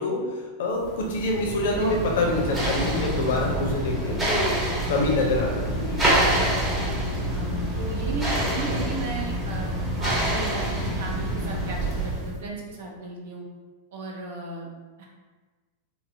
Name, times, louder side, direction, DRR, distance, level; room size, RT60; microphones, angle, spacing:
voice 1, 0.0-4.6 4.9-6.2, left 2 dB, 55° left, 0 dB, 0.5 m, -26 dB
sound 1, 0.9-12.4, right 1 dB, 15° right, 0.9 m, -26 dB
voice 2, 6.3-6.6 7.2-9.7 10.0-13.4 13.9-14.7 15.0-15.1, right 2 dB, 55° right, -1 dB, 0.6 m, -35 dB
3.4 x 2.0 x 2.6 m, 1.3 s
figure-of-eight pair, 90°, 0 cm